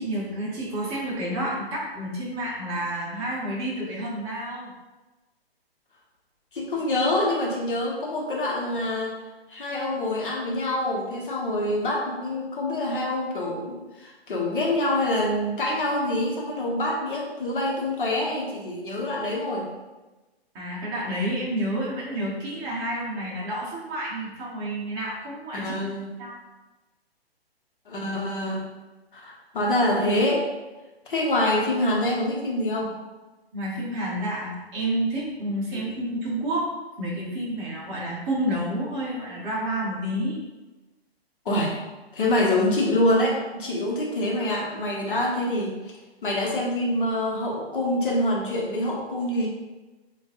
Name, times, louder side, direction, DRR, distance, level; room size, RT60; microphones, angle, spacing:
voice 1, 0.0-4.7 20.5-25.7 26.2-26.4 33.5-36.7 37.0-40.4, right 1 dB, 20° right, -6 dB, 1.0 m, -29 dB
voice 2, 6.5-9.2 9.5-19.7 25.5-26.1 27.9-28.7 29.1-30.5 31.1-32.9 35.7-35.9 41.4-41.8 42.1-45.8 46.2-49.5, left 1 dB, 55° left, -2 dB, 1.2 m, -25 dB
7.0 x 2.6 x 2.5 m, 1.2 s
figure-of-eight pair, 130°, 31 cm